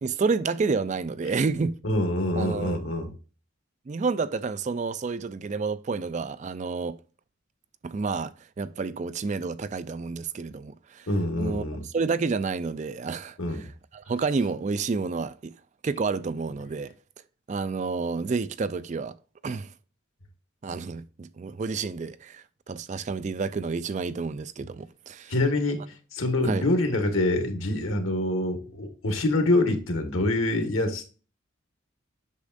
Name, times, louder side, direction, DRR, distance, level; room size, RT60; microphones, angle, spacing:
voice 1, 0.0-1.8 2.3-2.8 3.9-7.0 7.8-11.1 11.4-13.7 13.9-15.5 15.8-16.9 17.5-19.2 19.4-19.7 20.6-25.3 26.4-26.6, right 4 dB, 35° right, 0.3 m, -29 dB
voice 2, 1.8-3.1 11.1-11.8 13.4-13.7 25.3-25.8 26.1-31.1, left 1 dB, 85° left, 1.6 m, -25 dB
8.3 x 6.2 x 2.5 m
head